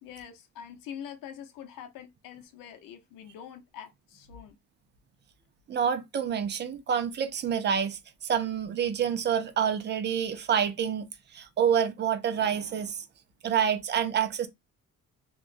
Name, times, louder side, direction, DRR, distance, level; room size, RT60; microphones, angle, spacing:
voice 1, 0.0-4.6, left 9 dB, 80° left, 0.8 m, -44 dB
voice 2, 5.7-13.1 13.4-14.5, right 8 dB, 35° right, 0.6 m, -28 dB
3.0 x 2.3 x 2.5 m
cardioid pair, 120°, 33 cm